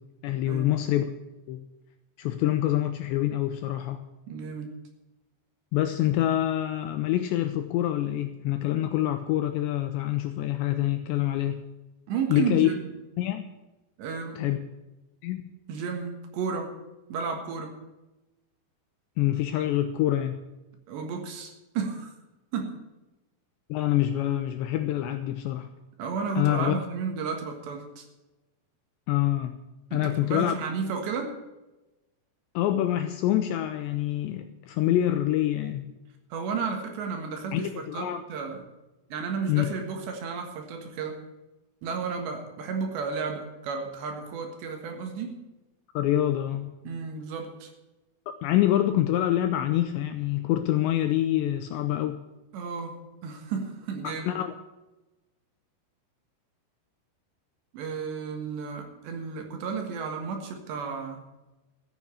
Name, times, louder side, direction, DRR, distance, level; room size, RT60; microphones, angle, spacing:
voice 1, 0.2-1.1 1.5-1.6 2.2-4.0 5.7-11.6 12.3-12.7 13.2-13.5 14.4-14.6 15.2-15.5 19.2-20.4 23.7-25.7 26.4-26.7 29.1-29.5 29.9-30.6 32.6-35.9 37.5-38.2 39.5-39.7 45.9-46.7 48.3-52.2 54.0-54.5, left 13 dB, 85° left, 7 dB, 2.6 m, -26 dB
voice 2, 4.3-4.7 12.1-12.9 14.0-14.4 15.7-16.7 17.1-17.8 20.9-22.1 22.5-22.8 26.0-28.0 29.9-31.4 36.3-38.6 39.1-41.2 41.8-45.4 46.8-47.7 52.5-54.3 57.7-61.2, right 5 dB, 70° right, 4 dB, 3.5 m, -33 dB
14.5 x 7.3 x 8.3 m, 1.1 s
omnidirectional pair, 5.8 m